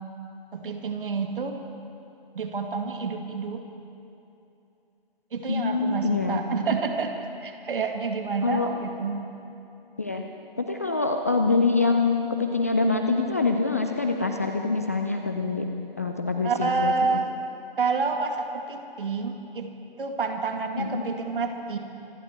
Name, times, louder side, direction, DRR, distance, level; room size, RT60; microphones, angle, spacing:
voice 1, 0.5-1.6 2.3-3.6 5.3-9.2 16.4-17.3 17.8-19.7 20.0-21.8, right 4 dB, 60° right, 4 dB, 2.0 m, -28 dB
voice 2, 5.5-6.4 8.4-8.7 10.0-10.2 10.6-15.7 16.0-16.9 20.8-21.0, left 3 dB, 15° left, 4 dB, 0.3 m, -25 dB
26.0 x 11.5 x 4.5 m, 2.8 s
figure-of-eight pair, 135°, 29 cm